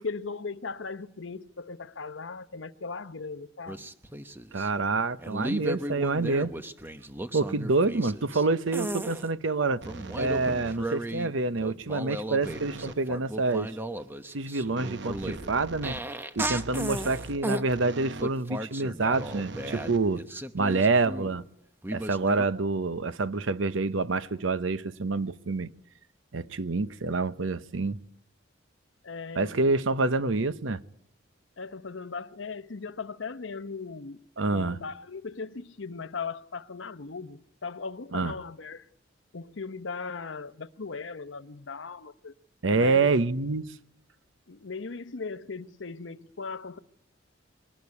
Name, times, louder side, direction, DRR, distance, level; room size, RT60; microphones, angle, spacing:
voice 1, 0.0-3.8 29.0-29.6 31.6-34.2 34.5-38.9 39.3-42.3 42.7-43.1 44.5-46.8, left 4 dB, 75° left, 0.9 m, -38 dB
sound 1, 3.7-4.7 5.2-8.4 8.7-9.3 9.9-11.3 11.6-17.7 18.2-21.4 21.8-22.4, right 1 dB, 10° right, 0.9 m, -35 dB
voice 2, 4.5-6.5 7.3-9.8 10.2-13.8 14.3-16.0 16.4-20.2 20.5-21.4 21.9-25.7 26.3-28.0 29.3-30.8 34.4-34.8 38.1-38.3 42.6-43.7, right 3 dB, 85° right, 0.9 m, -27 dB
sound 2, 9.8-11.0 12.4-13.1 14.8-18.4 19.1-20.6, right 2 dB, 65° right, 1.0 m, -42 dB
23.0 x 19.0 x 9.7 m
head